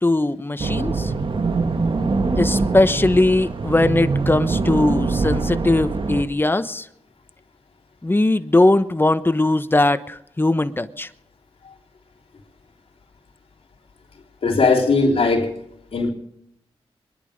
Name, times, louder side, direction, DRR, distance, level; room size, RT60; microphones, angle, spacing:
voice 1, 0.0-1.1 2.4-6.9 8.0-11.1, left 2 dB, 20° left, 1.0 m, -19 dB
sound 1, 0.6-6.2, right 3 dB, 55° right, 1.7 m, -23 dB
voice 2, 14.4-15.5 15.9-16.1, left 3 dB, 65° left, 3.4 m, -18 dB
24.0 x 11.0 x 5.1 m
cardioid pair, 55°, 11 cm